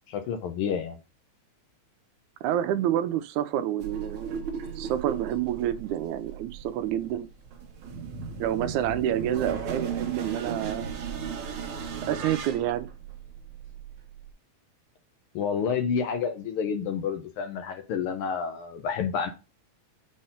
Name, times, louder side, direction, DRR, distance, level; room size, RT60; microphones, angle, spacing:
voice 1, 0.1-1.0 15.3-19.3, left 6 dB, 85° left, 1.2 m, -29 dB
voice 2, 2.4-4.4 4.8-7.3 8.4-10.9 12.0-12.9, right 11 dB, 85° right, 2.0 m, -28 dB
sound 1, 3.8-14.3, right 6 dB, 60° right, 1.5 m, -36 dB
5.5 x 4.3 x 5.5 m
omnidirectional pair, 3.4 m